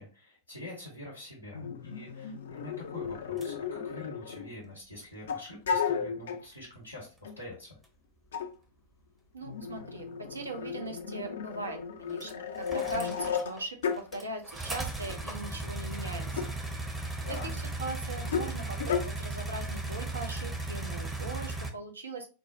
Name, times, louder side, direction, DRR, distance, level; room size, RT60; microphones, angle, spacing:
voice 1, 0.0-7.8 17.2-17.5, left 1 dB, 80° left, -4 dB, 1.0 m, -45 dB
sound 1, 1.5-4.7 5.3-6.4 7.2-7.4 8.3-8.5 9.4-14.2 15.0-15.2 16.3-16.5 18.2-18.5 18.8-19.0, left 7 dB, 60° left, 0.4 m, -34 dB
sound 2, 3.4-3.5 7.8-7.9 12.2-13.6 13.9-21.7, right 2 dB, 10° right, 0.7 m, -36 dB
voice 2, 9.3-16.4 17.5-22.3, right 2 dB, 75° right, 3 dB, 0.7 m, -40 dB
4.4 x 2.1 x 2.5 m, 0.34 s
figure-of-eight pair, 90°, 0 cm